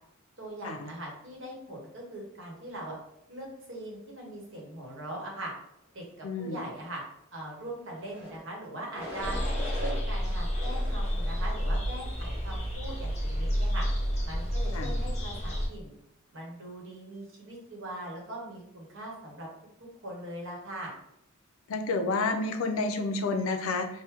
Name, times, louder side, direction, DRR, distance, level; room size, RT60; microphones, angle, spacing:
voice 1, 0.4-3.0 3.3-5.5 5.9-7.0 7.3-9.4 9.7-13.9 14.2-15.9 16.3-19.5 20.0-20.9, right 1 dB, 65° right, -2 dB, 1.0 m, -41 dB
voice 2, 6.2-6.6 14.7-14.9 21.7-23.9, left 3 dB, 85° left, 6 dB, 0.4 m, -30 dB
sound 1, 8.0-8.4 8.9-10.0 10.5-11.6 12.1-12.6, left 1 dB, 5° right, 1.1 m, -41 dB
sound 2, 9.2-15.7, equal, 30° left, 0.6 m, -30 dB
3.2 x 2.1 x 3.3 m, 0.78 s
head